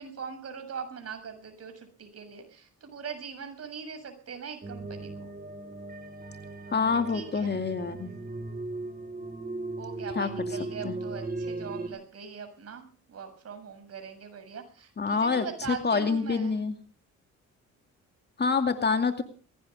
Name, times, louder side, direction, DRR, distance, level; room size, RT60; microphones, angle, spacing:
voice 1, 0.0-5.3 6.9-7.6 9.8-16.6, right 6 dB, 55° right, 7 dB, 7.1 m, -41 dB
sound 1, 4.6-11.9, right 2 dB, 30° right, 5.1 m, -37 dB
voice 2, 6.7-8.1 10.2-10.3 10.8-10.9 15.0-16.8 18.4-19.2, left 5 dB, 35° left, 7 dB, 2.4 m, -26 dB
21.5 x 17.5 x 3.6 m, 0.39 s
cardioid pair, 90°, 30 cm